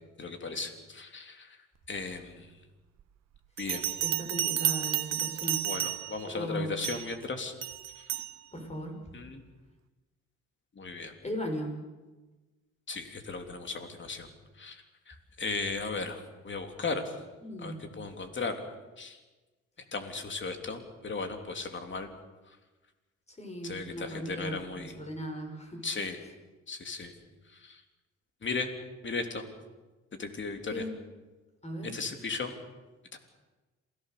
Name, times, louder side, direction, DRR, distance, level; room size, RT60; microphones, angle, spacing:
voice 1, 0.2-1.6 1.9-2.5 3.6-3.9 5.6-7.5 9.1-9.4 10.7-11.1 12.9-14.3 14.6-17.1 17.6-18.6 19.0-19.2 19.9-22.1 23.6-24.9 25.8-26.2 26.7-27.1 27.5-27.8 28.4-28.7 29.0-29.4 30.2-30.8 31.9-32.5 33.1-33.2, left 4 dB, 40° left, 5 dB, 3.3 m, -36 dB
Bell, 3.6-6.3 6.8-7.1 7.6-8.3, right 13 dB, 60° right, 1.0 m, -31 dB
voice 2, 4.0-5.6 6.3-6.8 8.5-9.0 11.2-11.7 17.4-17.9 23.3-25.9 30.7-30.9 31.6-32.0, equal, 20° left, 4 dB, 5.9 m, -37 dB
27.5 x 17.0 x 6.8 m, 1.2 s
cardioid pair, 90°, 30 cm